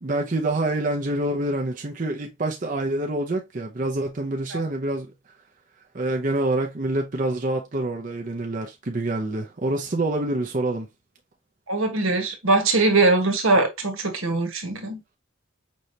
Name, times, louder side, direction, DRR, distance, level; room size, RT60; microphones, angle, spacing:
voice 1, 0.0-5.1 5.9-10.9, right 2 dB, 40° right, 0.6 m, -26 dB
voice 2, 11.7-15.0, right 2 dB, 80° right, 1.3 m, -21 dB
5.3 x 3.2 x 2.7 m
head